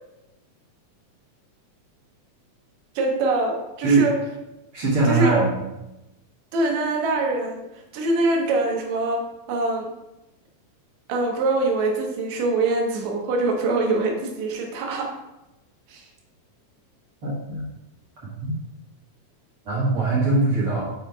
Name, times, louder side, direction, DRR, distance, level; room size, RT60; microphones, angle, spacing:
voice 1, 3.0-4.2 5.1-5.5 6.5-7.6 7.9-9.2 9.5-9.9 11.1-15.1 15.9-16.0, right 2 dB, 70° right, 1 dB, 2.2 m, -23 dB
voice 2, 4.7-5.6 17.2-17.6 18.4-18.5 19.7-20.9, right 3 dB, 50° right, -7 dB, 2.0 m, -21 dB
5.6 x 4.3 x 4.6 m, 0.95 s
omnidirectional pair, 3.6 m